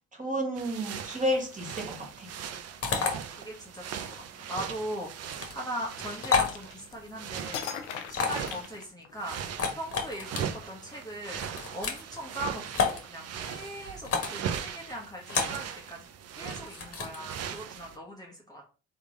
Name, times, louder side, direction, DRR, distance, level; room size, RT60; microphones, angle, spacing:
voice 1, 0.1-2.3, equal, 20° right, 1.9 m, -31 dB
sound 1, 0.5-8.8 9.2-18.0, right 8 dB, 50° right, 0.6 m, -40 dB
sound 2, 2.8-3.1 5.3-5.5 6.2-6.5 8.1-8.5 9.5-10.4 11.4-12.0 12.7-13.0 14.0-14.4 15.3-15.6 16.5-17.2, left 5 dB, 40° left, 1.3 m, -29 dB
voice 2, 2.8-9.4 9.7-11.4 11.7-16.1 16.4-18.7, equal, 10° left, 1.1 m, -40 dB
sound 3, 6.0-7.1 7.5-9.4, left 8 dB, 85° left, 0.6 m, -40 dB
3.6 x 3.2 x 3.7 m
hypercardioid pair, 50°, 34 cm